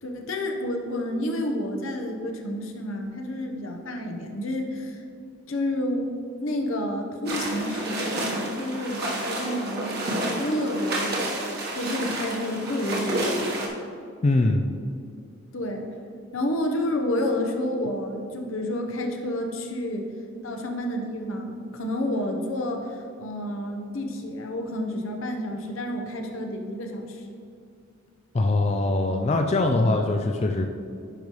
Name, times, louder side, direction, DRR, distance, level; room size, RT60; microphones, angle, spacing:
voice 1, 0.0-5.0 5.5-6.1 6.4-11.3 11.7-13.5 15.5-15.9 16.3-20.1 20.4-27.3, left 1 dB, 75° left, 3 dB, 0.9 m, -30 dB
sound 1, 7.2-13.7, right 1 dB, 50° right, 1.2 m, -30 dB
voice 2, 14.2-14.6 28.3-30.7, left 2 dB, 30° left, 4 dB, 0.3 m, -22 dB
9.9 x 5.3 x 3.1 m, 2.4 s
head